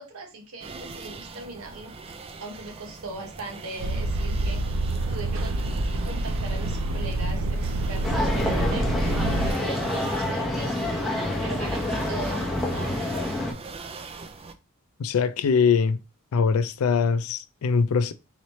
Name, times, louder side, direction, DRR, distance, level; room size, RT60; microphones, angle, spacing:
voice 1, 0.0-2.0 2.4-5.6 6.0-13.3, right 3 dB, 85° right, 1.1 m, -40 dB
sound 1, 0.6-14.5, right 3 dB, 25° right, 0.3 m, -41 dB
sound 2, 3.8-9.5, right 1 dB, 65° right, 0.6 m, -27 dB
sound 3, 8.0-13.5, left 1 dB, ahead, 0.9 m, -27 dB
voice 2, 15.0-16.0 16.3-18.1, left 5 dB, 75° left, 0.4 m, -22 dB
3.9 x 3.1 x 3.0 m
head